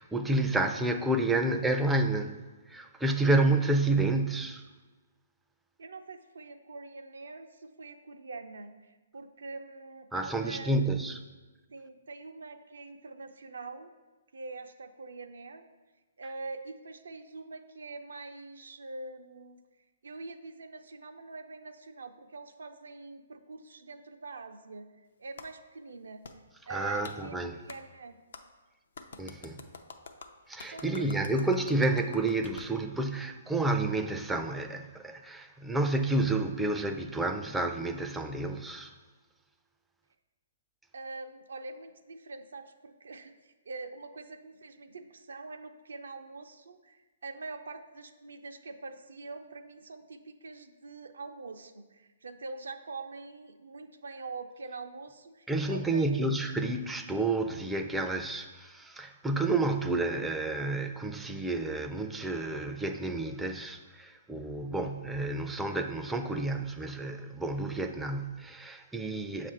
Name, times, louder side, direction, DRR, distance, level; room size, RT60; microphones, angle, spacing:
voice 1, 0.0-4.6 10.1-11.2 26.7-27.6 29.2-29.6 30.5-38.9 55.5-69.5, right 2 dB, 5° right, 5 dB, 0.3 m, -30 dB
voice 2, 5.8-10.8 11.7-13.9 14.3-15.7 16.2-19.6 20.0-24.9 25.2-26.2 26.7-28.2 30.7-31.3 40.9-56.2, right 3 dB, 80° right, 7 dB, 0.5 m, -44 dB
Clapping, 25.4-25.5 26.2-26.4 27.0-27.2 27.7-27.8 28.3-28.4 28.9-32.7, left 4 dB, 70° left, 0.5 m, -47 dB
6.9 x 2.5 x 5.6 m, 1.2 s
hypercardioid pair, 145°, 0 cm